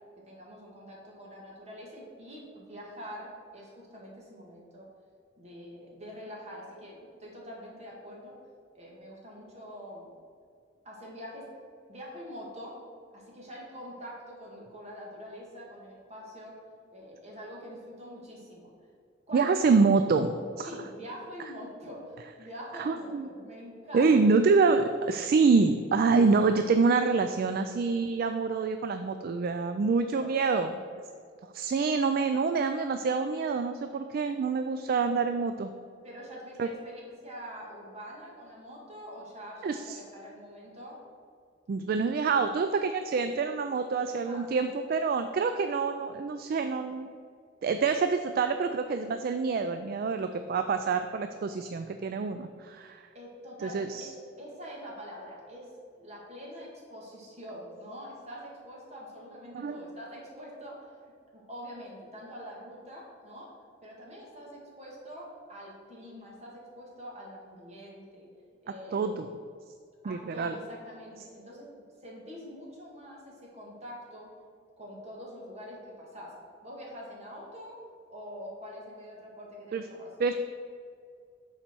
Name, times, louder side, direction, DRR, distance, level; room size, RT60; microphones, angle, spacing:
voice 1, 0.2-4.9 5.4-8.4 8.7-10.1 10.8-11.5 11.9-12.7 13.1-16.5 16.9-18.7 19.3-19.8 20.6-24.2 30.1-30.7 36.0-41.0 44.3-44.6 53.1-54.1 54.4-55.7 55.9-63.5 63.8-68.3 68.6-69.1 70.0-71.7 72.0-74.3 74.8-76.4 76.6-77.8 78.1-80.1, equal, 35° right, -3 dB, 1.9 m, -45 dB
voice 2, 19.3-20.3 20.6-20.7 22.8-23.3 23.9-30.7 31.5-35.7 36.6-36.7 39.6-40.0 41.7-47.1 47.6-53.1 53.6-54.1 59.5-59.8 68.9-69.3 70.0-70.5 79.7-79.8 80.2-80.3, right 4 dB, 50° right, 8 dB, 0.3 m, -26 dB
6.8 x 4.3 x 6.0 m, 2.2 s
head